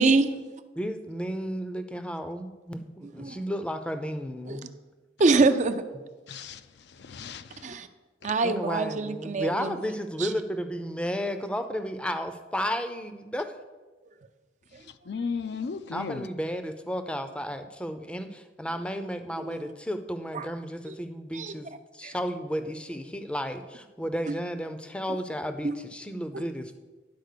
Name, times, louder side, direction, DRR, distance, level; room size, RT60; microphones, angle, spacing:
voice 1, 0.0-0.6 3.2-3.4 4.5-4.6 5.2-5.8 7.6-7.9 8.2-9.8 10.2-10.3 19.4-19.6 20.3-20.4 20.9-21.0 21.3-21.5 22.0-22.1 25.6-25.8 26.3-26.4, right 3 dB, 40° right, 9 dB, 0.5 m, -25 dB
voice 2, 0.8-4.7 8.4-13.6 15.9-21.7 21.9-26.8, equal, 5° left, 8 dB, 0.5 m, -33 dB
voice 3, 6.3-7.8 8.2-8.3 14.7-16.3, left 5 dB, 60° left, 11 dB, 0.4 m, -36 dB
10.5 x 4.3 x 6.7 m, 1.3 s
head